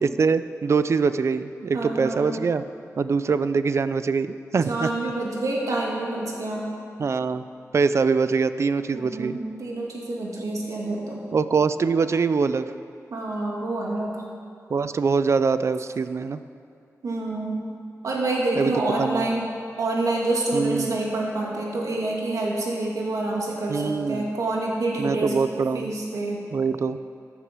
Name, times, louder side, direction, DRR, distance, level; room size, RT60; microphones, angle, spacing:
voice 1, 0.0-2.6 3.0-4.9 7.0-7.4 7.7-9.4 11.3-12.7 14.7-16.4 18.5-18.7 19.0-19.3 20.5-20.9 23.7-24.3 25.0-25.9 26.5-27.0, right 5 dB, 55° right, 12 dB, 0.5 m, -23 dB
voice 2, 1.7-2.4 4.7-6.7 8.9-11.2 13.1-14.2 17.0-17.6 18.0-19.5 19.8-26.4, right 2 dB, 85° right, -2 dB, 2.4 m, -27 dB
14.0 x 9.4 x 6.2 m, 2.4 s
wide cardioid pair, 110°, 6 cm